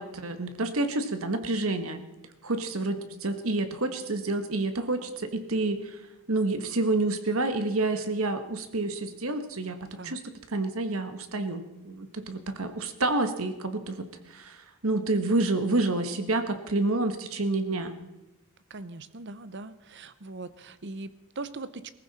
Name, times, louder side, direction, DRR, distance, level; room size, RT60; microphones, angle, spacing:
voice 1, 0.0-2.0 2.4-6.0 6.3-10.2 10.5-17.9, right 2 dB, 70° right, 8 dB, 1.4 m, -29 dB
voice 2, 18.7-21.9, right 3 dB, 55° right, 14 dB, 0.8 m, -40 dB
18.0 x 15.0 x 4.2 m, 0.99 s
head